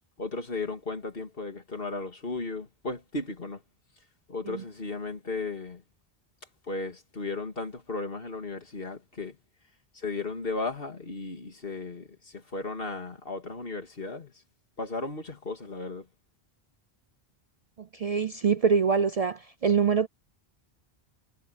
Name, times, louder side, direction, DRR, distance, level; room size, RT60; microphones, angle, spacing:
voice 1, 0.2-3.6 4.3-5.8 6.7-9.4 9.9-14.3 14.8-16.1, left 3 dB, 65° left, 2.7 m, -35 dB
voice 2, 17.8-20.1, right 6 dB, 45° right, 0.5 m, -25 dB
omnidirectional pair, 1.0 m